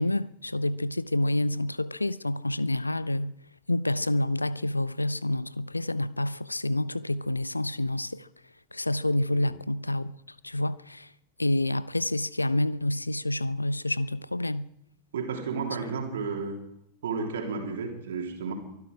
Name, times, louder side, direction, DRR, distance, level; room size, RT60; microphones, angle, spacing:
voice 1, 0.0-3.3 3.7-8.3 8.7-10.1 10.4-11.1 11.4-14.7, left 1 dB, 85° left, 0.5 m, -28 dB
voice 2, 15.1-16.6 17.0-18.5, right 5 dB, 60° right, 3.3 m, -32 dB
23.5 x 12.0 x 4.9 m
figure-of-eight pair, 90°, 0 cm